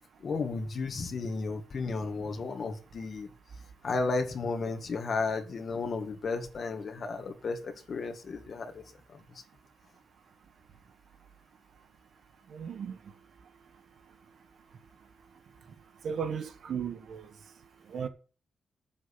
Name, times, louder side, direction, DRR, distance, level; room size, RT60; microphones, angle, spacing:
voice 1, 0.2-3.3 3.8-8.8 9.1-9.2, left 4 dB, 45° left, 1.9 m, -33 dB
voice 2, 12.5-13.0 16.0-17.3 17.9-18.1, right 7 dB, 70° right, 1.5 m, -35 dB
9.4 x 7.5 x 8.5 m
wide cardioid pair, 155°, 0 cm